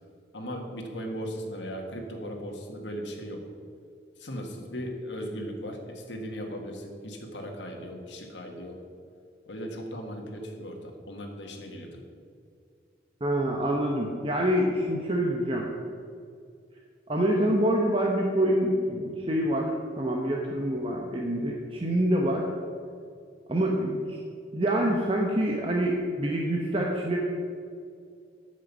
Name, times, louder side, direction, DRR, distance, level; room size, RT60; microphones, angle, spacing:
voice 1, 0.3-3.4 4.2-8.8 9.5-12.0, equal, 90° left, 1 dB, 1.7 m, -37 dB
voice 2, 13.2-15.7 17.1-22.5 23.5-24.0 24.5-27.2, right 1 dB, 30° right, -1 dB, 0.9 m, -26 dB
9.3 x 6.5 x 8.3 m, 2.3 s
head